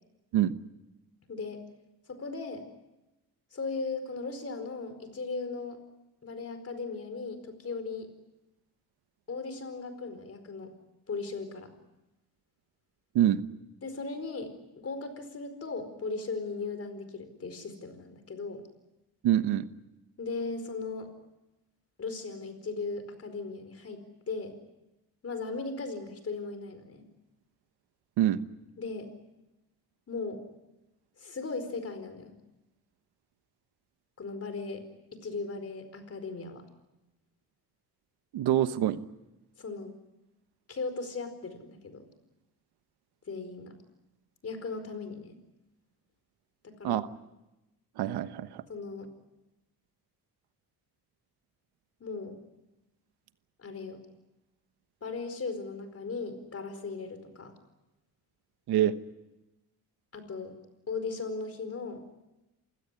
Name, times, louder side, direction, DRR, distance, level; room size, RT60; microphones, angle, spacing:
voice 1, 1.3-1.6 2.1-2.6 3.5-5.8 6.2-8.1 9.3-10.7 11.1-11.7 13.8-18.6 20.2-21.1 22.0-24.6 25.2-27.0 28.8-29.1 30.1-30.4 31.2-32.4 34.2-34.8 35.1-36.6 39.6-39.9 40.7-42.0 43.3-43.7 44.4-45.4 46.6-47.0 48.7-49.1 52.0-52.4 53.6-54.0 55.0-57.5 60.1-60.5 60.9-62.0, left 4 dB, 40° left, 9 dB, 4.7 m, -37 dB
voice 2, 19.2-19.7 28.2-28.4 38.3-39.0 46.8-47.1 48.0-48.6 58.7-58.9, right 12 dB, 85° right, 12 dB, 1.2 m, -25 dB
28.0 x 16.5 x 9.8 m, 0.99 s
cardioid pair, 105°, 38 cm